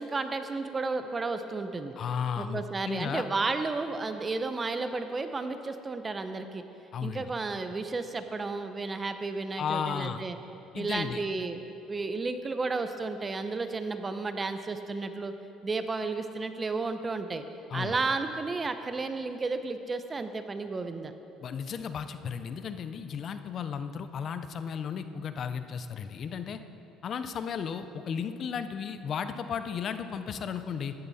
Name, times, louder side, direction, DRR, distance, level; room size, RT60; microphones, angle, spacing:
voice 1, 0.0-2.0 2.4-6.6 7.0-10.4 10.7-11.6 11.9-15.3 15.6-17.4 17.7-21.1, right 3 dB, 25° right, 9 dB, 0.8 m, -32 dB
voice 2, 2.0-3.2 6.9-7.3 9.6-10.2 10.7-11.2 17.7-18.0 21.4-26.6 27.0-30.9, left 7 dB, 50° left, 10 dB, 0.6 m, -34 dB
14.5 x 10.5 x 4.2 m, 2.9 s
supercardioid pair, 90°, 0 cm